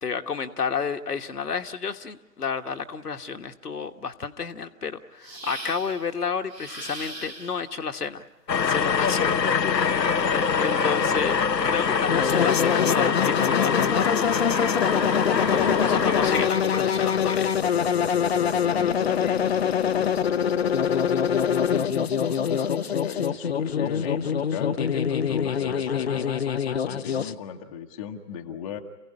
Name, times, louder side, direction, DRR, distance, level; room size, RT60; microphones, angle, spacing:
voice 1, 0.0-8.2 8.6-9.3 9.6-10.0 10.3-11.4 11.6-14.2 15.3-17.5, left 6 dB, 70° left, 6 dB, 1.5 m, -31 dB
sound 1, 5.2-6.1 6.5-7.7 9.4-11.3, right 2 dB, 90° right, 3.4 m, -42 dB
sound 2, 8.5-16.5, left 6 dB, 85° left, 0.9 m, -24 dB
sound 3, 12.1-27.3, left 8 dB, 40° left, 0.8 m, -24 dB
voice 2, 15.4-15.9 18.6-26.3 26.8-28.8, left 7 dB, 20° left, 3 dB, 1.2 m, -37 dB
28.0 x 16.5 x 9.9 m, 1.1 s
figure-of-eight pair, 135°, 49 cm